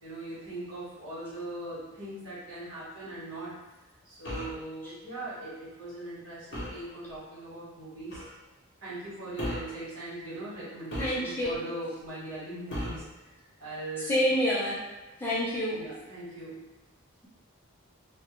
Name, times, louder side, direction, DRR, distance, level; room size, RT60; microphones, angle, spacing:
voice 1, 0.0-3.5 4.0-8.2 8.8-13.0 13.4-14.2 15.7-16.6, right 1 dB, 75° right, -10 dB, 1.2 m, -40 dB
sound 1, 4.2-4.6 6.5-6.9 8.1-8.3 9.4-9.8 10.9-11.6 12.7-13.1, equal, 55° left, 0.7 m, -37 dB
voice 2, 11.0-11.6 14.1-14.8 15.2-15.8, equal, 10° left, -8 dB, 0.4 m, -27 dB
2.3 x 2.1 x 2.9 m, 1.1 s
head